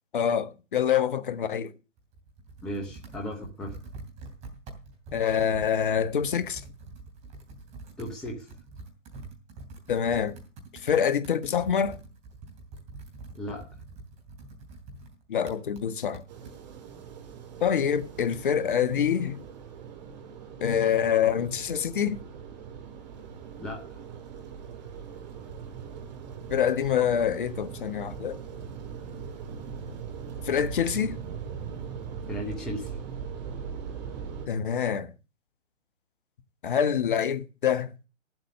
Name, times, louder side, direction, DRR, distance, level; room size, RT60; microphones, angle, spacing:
voice 1, 0.1-1.7 5.1-6.6 9.9-10.4 10.8-12.0 15.3-16.2 17.6-19.4 20.6-22.2 26.5-28.4 30.4-31.2 34.5-35.1 36.6-37.9, left 8 dB, 40° left, 1.1 m, -26 dB
Computer keyboard, 2.0-16.6, right 3 dB, 15° right, 3.0 m, -46 dB
voice 2, 2.6-3.7 8.0-8.5 13.3-13.6 23.6-23.9 32.3-33.0, left 1 dB, ahead, 0.6 m, -35 dB
sound 1, 16.3-34.5, right 7 dB, 35° right, 1.9 m, -40 dB
14.0 x 7.8 x 6.4 m
figure-of-eight pair, 140°, 38 cm